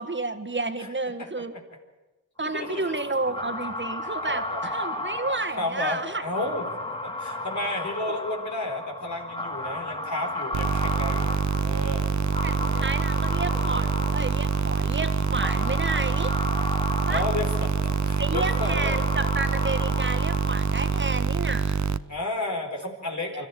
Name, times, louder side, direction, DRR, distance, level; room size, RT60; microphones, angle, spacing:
voice 1, 0.0-1.5 2.4-6.2 12.4-16.3 17.1-17.2 18.2-21.9, right 3 dB, 35° right, 8 dB, 1.7 m, -31 dB
voice 2, 2.4-2.9 3.3-3.4 4.3-4.6 5.5-6.6 7.0-12.1 12.7-12.9 17.1-19.0 22.1-23.5, left 2 dB, 60° left, 3 dB, 4.3 m, -32 dB
sound 1, 2.5-21.4, left 2 dB, 15° left, 2.0 m, -34 dB
sound 2, 10.5-22.0, right 6 dB, 60° right, 0.7 m, -25 dB
25.0 x 13.5 x 8.1 m, 1.1 s
cardioid pair, 55°, 33 cm